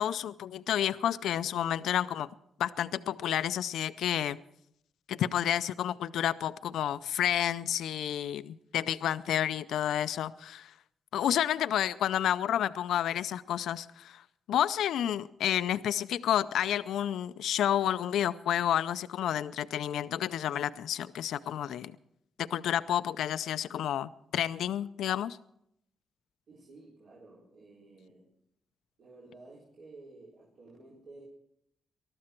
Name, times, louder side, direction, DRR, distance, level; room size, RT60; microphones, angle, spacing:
voice 1, 0.0-2.3 2.6-4.4 5.1-10.7 11.1-14.2 14.5-21.9 22.4-25.4, left 10 dB, 85° left, 14 dB, 0.4 m, -30 dB
voice 2, 26.5-28.3 29.0-31.2, right 2 dB, 65° right, -5 dB, 4.2 m, -53 dB
20.0 x 13.0 x 4.4 m, 0.75 s
cardioid pair, 90°, 0 cm